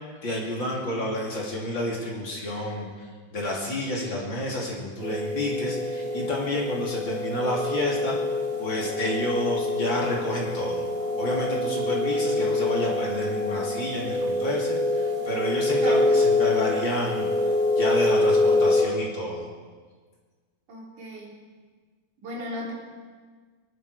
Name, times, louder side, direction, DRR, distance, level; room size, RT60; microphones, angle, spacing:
voice 1, 0.2-3.1 3.3-8.2 8.6-10.8 11.2-19.5, left 1 dB, 40° left, -3 dB, 3.2 m, -30 dB
sound 1, 5.0-18.8, left 2 dB, 70° right, 4.6 m, -25 dB
voice 2, 20.7-21.4 22.2-22.7, equal, 90° right, -3 dB, 4.8 m, -36 dB
25.5 x 11.5 x 4.9 m, 1.5 s
omnidirectional pair, 3.5 m